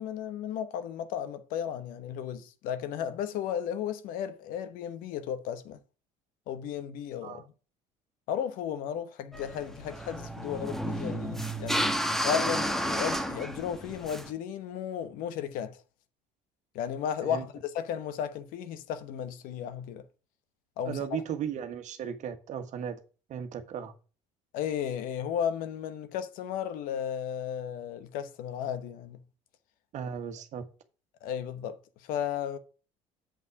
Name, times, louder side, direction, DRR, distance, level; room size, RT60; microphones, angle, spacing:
voice 1, 0.0-5.8 6.5-7.4 8.3-11.9 12.2-15.8 16.7-20.0 20.8-21.0 24.5-29.2 31.2-32.6, left 9 dB, 70° left, 1.1 m, -34 dB
sound 1, 9.3-14.3, equal, ahead, 1.3 m, -31 dB
voice 2, 20.8-23.0 23.3-23.9 29.9-30.6, right 8 dB, 55° right, 1.4 m, -36 dB
7.6 x 5.5 x 4.8 m
supercardioid pair, 95°, 15 cm